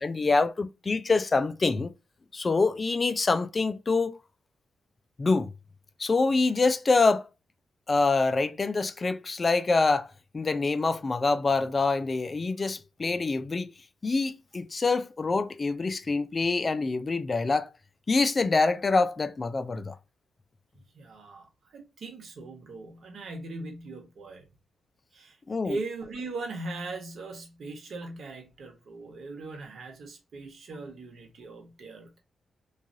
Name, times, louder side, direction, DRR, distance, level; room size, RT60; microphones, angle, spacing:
voice 1, 0.0-1.9 2.3-4.2 5.2-5.5 6.0-7.3 7.9-13.7 14.0-17.7 18.1-20.0 25.5-25.8, left 3 dB, 30° left, 0.3 m, -25 dB
voice 2, 20.7-24.5 25.1-25.4 25.6-32.2, right 3 dB, 65° right, 1.1 m, -39 dB
3.2 x 2.3 x 2.5 m
wide cardioid pair, 120°, 0 cm